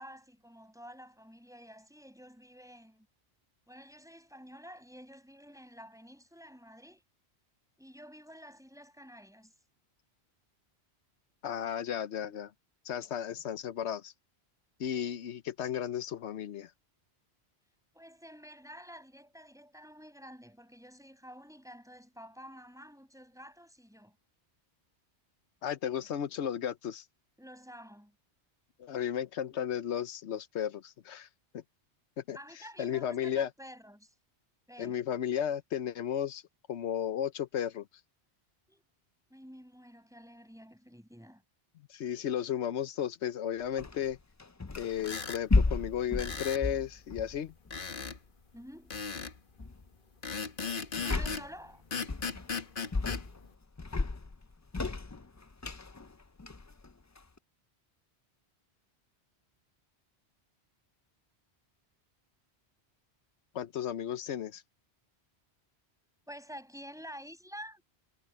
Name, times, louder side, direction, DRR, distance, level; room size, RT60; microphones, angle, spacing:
voice 1, 0.0-3.1 3.7-7.0 7.8-9.5 17.9-24.2 27.4-28.2 32.3-34.1 34.7-35.0 38.7-38.8 39.3-41.4 48.5-48.9 51.0-51.8 66.3-67.8, equal, 5° right, 7.1 m, -50 dB
voice 2, 11.4-12.5 12.8-14.1 14.8-16.7 25.6-27.0 28.8-31.3 31.5-31.6 32.2-32.4 32.8-33.5 34.8-36.4 36.7-37.9 41.9-44.2 44.7-47.5 63.5-64.6, left 9 dB, 85° left, 1.1 m, -34 dB
sound 1, 43.8-45.1 45.5-47.9 48.9-49.2 49.6-49.9 51.0-51.6 52.1-52.6 52.9-53.5 53.8-57.4, left 3 dB, 25° left, 0.4 m, -33 dB
sound 2, 45.0-45.4 46.2-46.7 47.7-48.2 48.9-49.4 50.2-51.5 51.9-53.2, left 5 dB, 50° left, 1.3 m, -37 dB
omnidirectional pair, 1.1 m